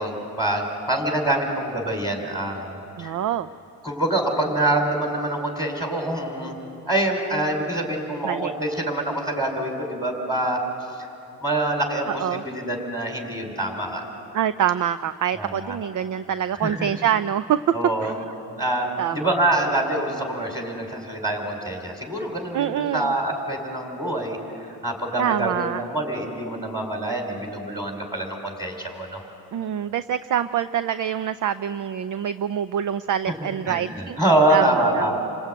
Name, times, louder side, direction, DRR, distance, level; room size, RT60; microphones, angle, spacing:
voice 1, 0.0-3.2 3.8-6.6 6.9-10.6 11.0-11.1 11.4-14.0 15.3-15.8 16.6-16.9 17.7-18.1 18.6-29.2 33.3-35.2, right 1 dB, 10° right, 1 dB, 5.0 m, -25 dB
voice 2, 3.0-3.5 8.2-8.5 12.1-12.4 14.3-17.6 18.0-18.2 19.0-19.3 22.5-23.1 25.2-25.8 29.5-34.2 34.5-35.2, right 9 dB, 45° right, 13 dB, 0.6 m, -25 dB
28.0 x 18.5 x 9.2 m, 2.8 s
cardioid pair, 85°, 43 cm